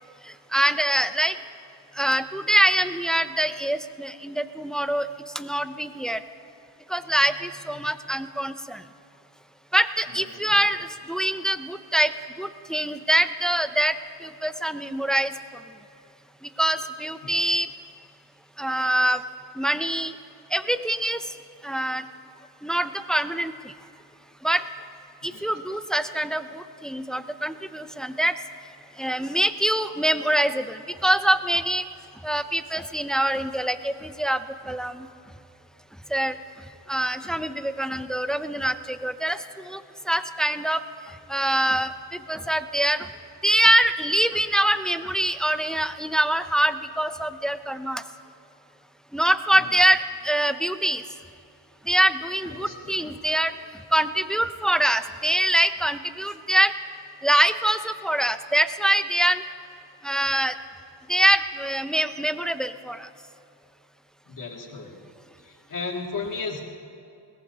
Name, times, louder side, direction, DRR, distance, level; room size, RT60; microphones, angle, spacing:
voice 1, 0.5-1.3 2.0-5.1 5.4-6.2 6.9-8.8 9.7-12.1 12.4-13.9 14.2-15.3 16.6-17.7 18.6-19.2 19.6-20.1 20.5-21.2 21.6-22.0 22.6-23.5 24.4-24.6 25.2-28.3 29.0-31.8 32.2-34.4 34.7-35.1 36.1-36.4 36.9-39.4 39.7-39.8 40.1-40.8 41.3-43.1 43.4-48.0 49.1-51.0 51.9-53.5 53.9-56.7 57.2-59.4 60.0-60.5 61.1-63.1, right 1 dB, ahead, 10 dB, 0.4 m, -24 dB
voice 2, 10.1-10.7 17.2-17.4 25.3-25.5 49.6-49.7 52.5-53.0 64.3-65.0 65.4-66.6, left 4 dB, 45° left, -1 dB, 2.5 m, -36 dB
21.5 x 21.0 x 2.8 m, 2.4 s
wide cardioid pair, 140°, 44 cm